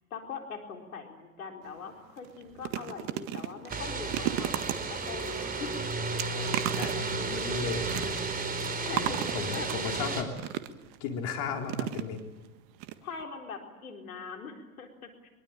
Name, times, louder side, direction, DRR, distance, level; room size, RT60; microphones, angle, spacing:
voice 1, 0.1-5.7 7.6-7.7 8.5-9.3 9.5-9.7 10.1-10.2 13.0-15.3, left 5 dB, 80° left, 3 dB, 4.3 m, -42 dB
Ice Chewing Edited, 1.6-1.8 2.2-11.0 11.7-12.5 12.8-12.9 13.2-13.3, right 13 dB, 50° right, 1.7 m, -36 dB
sound 1, 3.7-10.2, right 3 dB, 20° right, 4.4 m, -33 dB
voice 2, 6.3-8.2 8.9-10.3 11.0-12.2, left 6 dB, 55° left, 2 dB, 3.9 m, -36 dB
24.0 x 23.0 x 8.8 m, 1.2 s
hypercardioid pair, 90°, 41 cm